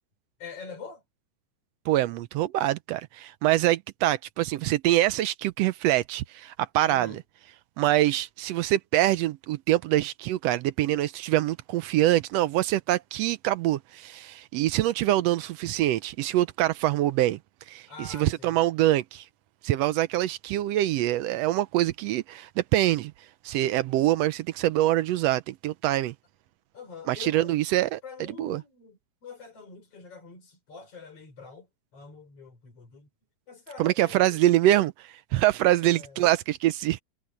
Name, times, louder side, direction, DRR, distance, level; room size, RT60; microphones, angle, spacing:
voice 1, 0.4-1.0 6.9-7.2 17.9-18.6 26.7-27.6 28.0-31.7 31.9-33.1 33.5-34.5 35.8-36.2, left 5 dB, 55° left, 5.6 m, -45 dB
voice 2, 1.9-7.2 7.8-17.4 17.7-19.2 19.6-23.1 23.4-26.1 27.1-28.0 28.4-28.6 33.8-37.0, right 14 dB, 75° right, 1.6 m, -24 dB
omnidirectional pair, 3.3 m